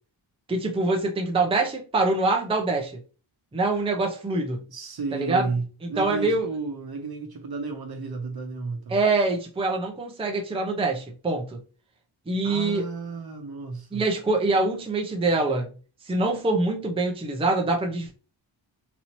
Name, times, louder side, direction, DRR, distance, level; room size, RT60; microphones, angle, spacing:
voice 1, 0.5-2.9 3.5-4.6 5.1-5.5 6.0-6.5 8.9-11.6 12.3-12.9 13.9-15.7 16.0-18.1, right 2 dB, 10° right, 0.6 m, -24 dB
voice 2, 4.7-9.0 12.4-14.0, right 4 dB, 50° right, 0.9 m, -33 dB
4.1 x 2.9 x 2.9 m
wide cardioid pair, 145°, 48 cm